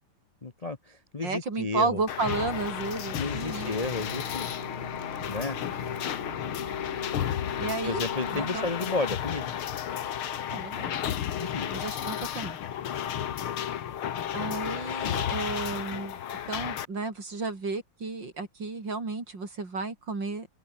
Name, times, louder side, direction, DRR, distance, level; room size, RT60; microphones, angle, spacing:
voice 1, 0.4-2.0 3.1-4.5 5.3-5.6 7.6-9.5 11.4-11.7, left 3 dB, 55° left, 0.4 m, -32 dB
voice 2, 1.2-3.7 7.6-8.0 8.3-8.7 10.5-11.0 11.7-12.6 14.3-16.2 16.5-20.5, right 3 dB, 55° right, 5.4 m, -32 dB
sound 1, 2.1-16.9, left 10 dB, 75° left, 2.2 m, -33 dB
sound 2, 2.4-8.9, right 2 dB, 25° right, 4.2 m, -44 dB
open air
omnidirectional pair, 2.4 m